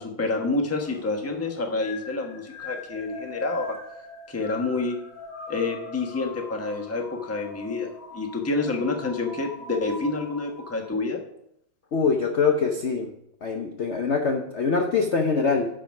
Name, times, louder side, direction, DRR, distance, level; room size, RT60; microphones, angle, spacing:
voice 1, 0.0-3.8 4.3-5.0 5.5-11.2, left 3 dB, 10° left, 3 dB, 0.8 m, -28 dB
sound 1, 0.8-10.9, left 3 dB, 75° left, 3.4 m, -42 dB
voice 2, 11.9-13.1 13.4-15.7, left 5 dB, 50° left, 3 dB, 0.8 m, -23 dB
10.5 x 5.1 x 5.9 m, 0.77 s
omnidirectional pair, 2.1 m